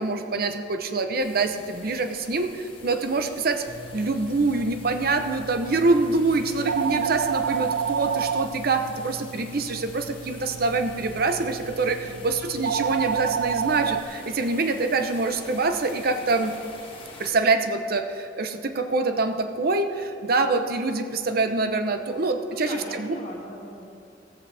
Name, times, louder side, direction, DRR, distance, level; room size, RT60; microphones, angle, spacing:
voice 1, 0.0-3.6 3.9-16.5 17.2-23.1, right 3 dB, 55° right, 7 dB, 0.8 m, -25 dB
sound 1, 1.2-17.3, left 3 dB, 30° left, 1.8 m, -46 dB
sound 2, 3.7-14.0, right 7 dB, 75° right, 0.5 m, -31 dB
voice 2, 22.4-23.8, left 1 dB, 50° left, -3 dB, 2.4 m, -39 dB
14.5 x 14.5 x 3.4 m, 2.6 s
head